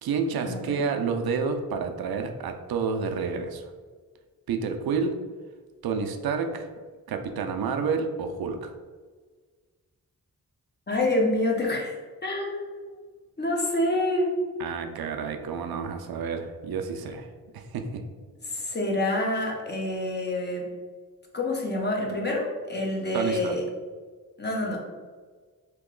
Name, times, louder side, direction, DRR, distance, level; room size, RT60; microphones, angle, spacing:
voice 1, 0.0-3.7 4.5-5.2 5.8-6.7 7.1-8.7 14.6-17.3 17.5-18.0 23.1-23.6, right 5 dB, 85° right, 5 dB, 0.5 m, -29 dB
voice 2, 10.9-12.0 12.2-12.7 13.4-14.4 18.5-20.7 21.3-23.6 24.4-24.8, left 1 dB, 30° left, -1 dB, 0.7 m, -27 dB
3.0 x 2.9 x 3.7 m, 1.5 s
wide cardioid pair, 145°, 35 cm